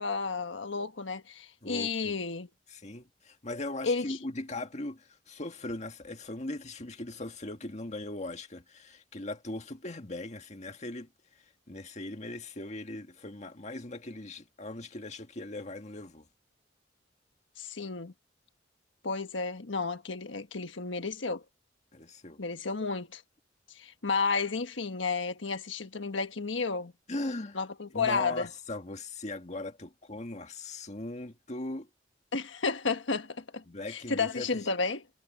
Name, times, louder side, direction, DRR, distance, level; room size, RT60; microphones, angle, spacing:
voice 1, 0.0-2.5 3.8-4.2 17.6-18.1 19.0-21.4 22.4-23.2 23.7-26.9 27.5-28.5 32.3-35.0, left 4 dB, 85° left, 1.4 m, -32 dB
voice 2, 1.6-2.2 2.7-16.3 21.9-22.4 27.1-27.6 27.9-31.9 33.7-34.5, left 2 dB, 40° left, 1.8 m, -39 dB
head